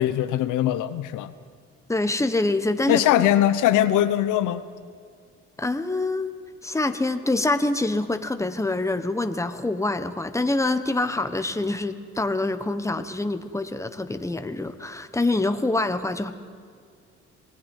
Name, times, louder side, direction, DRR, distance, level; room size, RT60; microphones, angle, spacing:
voice 1, 0.0-1.3 2.9-4.6, left 12 dB, 90° left, 12 dB, 0.9 m, -21 dB
voice 2, 1.9-3.0 5.6-6.3 6.6-16.3, left 2 dB, 10° left, 9 dB, 1.3 m, -25 dB
27.0 x 19.0 x 5.6 m, 2.1 s
cardioid pair, 90°, 30 cm